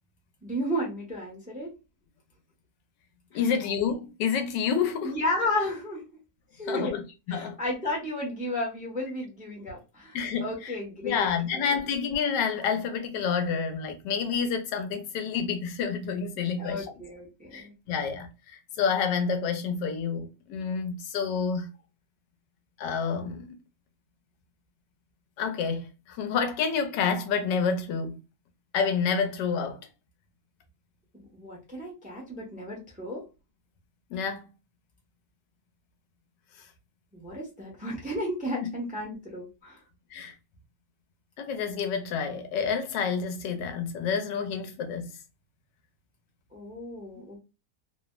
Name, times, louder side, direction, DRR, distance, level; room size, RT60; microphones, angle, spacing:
voice 1, 0.4-1.7 3.3-3.4 5.0-6.0 6.5-6.9 7.3-11.7 16.6-17.7 31.3-33.2 37.1-39.8 46.5-47.4, left 1 dB, 10° right, 0.5 m, -33 dB
voice 2, 3.3-5.1 6.7-7.6 10.1-10.8 11.0-16.9 17.5-21.7 22.8-23.5 25.4-28.2 28.7-29.8 34.1-34.4 38.6-38.7 40.1-40.3 41.4-45.1, left 6 dB, 90° left, 1.3 m, -29 dB
3.2 x 2.0 x 2.2 m
omnidirectional pair, 1.8 m